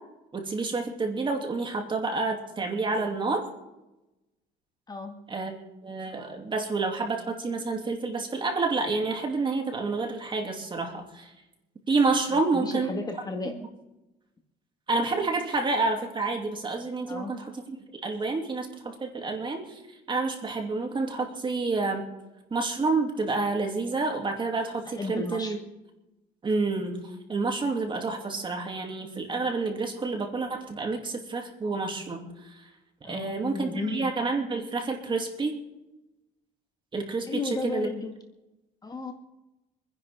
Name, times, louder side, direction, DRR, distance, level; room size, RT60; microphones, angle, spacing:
voice 1, 0.3-3.5 5.3-5.6 5.8-11.3 11.9-12.9 13.6-13.7 14.9-19.8 20.1-22.1 22.5-25.6 26.4-32.6 33.0-35.6 36.9-37.9, right 3 dB, 30° right, 2 dB, 2.8 m, -29 dB
voice 2, 12.3-13.6 17.1-17.4 24.8-25.6 33.0-34.1 37.3-38.1 38.8-39.1, left 3 dB, 25° left, 4 dB, 1.9 m, -34 dB
26.5 x 10.5 x 3.7 m, 0.98 s
cardioid pair, 110°, 17 cm